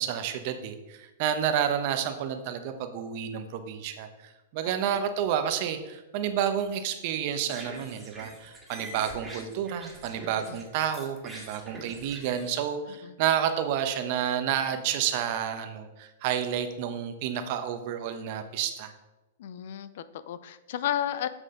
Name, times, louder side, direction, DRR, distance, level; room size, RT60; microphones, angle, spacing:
voice 1, 0.0-18.9, right 9 dB, 50° right, 8 dB, 0.9 m, -30 dB
voice 2, 4.6-5.0 10.5-10.6 12.9-13.2 19.4-21.3, left 11 dB, 65° left, 14 dB, 0.5 m, -33 dB
sound 1, 7.3-10.6 10.9-12.5, right 2 dB, 10° right, 2.2 m, -44 dB
7.8 x 6.2 x 3.8 m, 1.0 s
hypercardioid pair, 120°, 0 cm